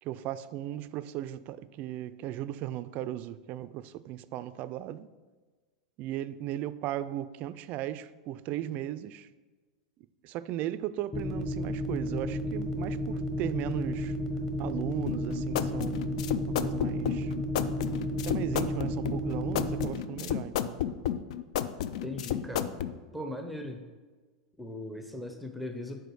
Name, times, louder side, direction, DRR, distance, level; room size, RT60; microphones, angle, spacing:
voice 1, 0.0-5.1 6.0-9.3 10.2-14.2 14.6-16.1 16.5-17.3 18.2-20.8, right 12 dB, 45° right, 0.3 m, -37 dB
sound 1, 11.1-19.9, left 1 dB, 15° left, 1.1 m, -32 dB
sound 2, 15.1-22.9, left 10 dB, 70° left, 0.4 m, -32 dB
voice 2, 22.0-22.8 23.1-23.8 24.6-26.0, left 1 dB, ahead, 0.6 m, -38 dB
5.0 x 4.6 x 6.1 m
hypercardioid pair, 105°, 4 cm